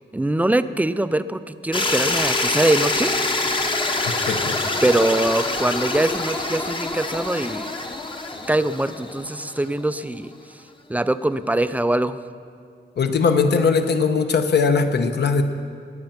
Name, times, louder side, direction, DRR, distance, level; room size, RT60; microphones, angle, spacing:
voice 1, 0.1-3.1 4.8-7.7 8.5-10.3 10.9-12.2, right 1 dB, 10° right, 12 dB, 0.3 m, -22 dB
sound 1, 1.7-9.7, left 2 dB, 25° left, 0.9 m, -25 dB
voice 2, 4.3-4.6 13.0-15.4, left 5 dB, 65° left, 7 dB, 1.0 m, -19 dB
20.5 x 8.9 x 5.8 m, 2.3 s
wide cardioid pair, 180°, 19 cm